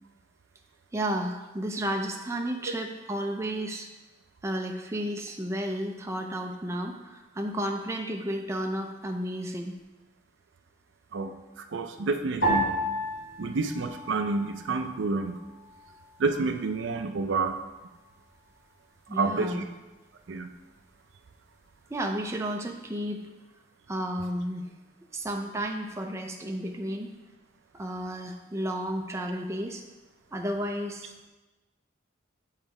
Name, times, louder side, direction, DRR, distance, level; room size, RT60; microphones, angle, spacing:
voice 1, 0.9-3.9 4.4-9.7 19.1-19.7 21.9-23.3 23.9-24.7 25.1-27.2 27.7-29.8 30.3-31.1, right 1 dB, 15° right, 2 dB, 0.4 m, -32 dB
voice 2, 11.1-12.8 13.4-15.4 16.2-17.6 19.1-19.6 20.3-20.5, right 3 dB, 75° right, 7 dB, 0.5 m, -29 dB
sound 1, 12.4-14.9 15.2-16.1 16.7-17.1, right 1 dB, 65° left, 2.2 m, -31 dB
7.1 x 3.2 x 4.7 m, 1.1 s
head